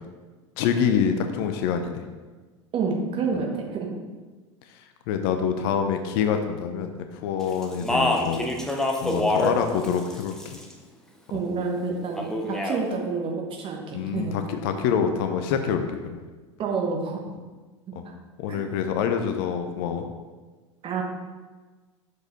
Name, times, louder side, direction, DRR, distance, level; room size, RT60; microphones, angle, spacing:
voice 1, 0.6-2.0 3.3-3.4 5.1-8.5 9.0-10.6 13.9-16.2 18.4-20.1, left 7 dB, 50° left, 7 dB, 0.6 m, -26 dB
voice 2, 2.7-3.9 11.3-14.4 16.6-17.2 18.5-18.7 20.8-21.0, right 4 dB, 35° right, 1 dB, 1.4 m, -28 dB
Speech, 7.6-9.6 9.8-10.7 12.2-12.8, left 1 dB, 5° left, 0.8 m, -25 dB
6.4 x 4.9 x 4.0 m, 1.3 s
figure-of-eight pair, 85°, 16 cm